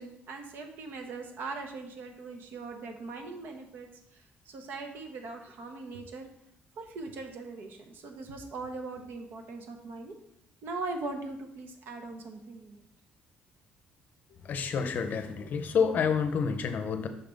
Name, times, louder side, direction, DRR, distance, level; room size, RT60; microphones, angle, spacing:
voice 1, 0.0-6.3 6.8-10.1 10.6-12.8, right 3 dB, 65° right, 4 dB, 0.9 m, -40 dB
voice 2, 14.4-17.1, left 6 dB, 50° left, 8 dB, 0.6 m, -28 dB
5.7 x 3.5 x 5.1 m, 0.76 s
cardioid pair, 125°, 4 cm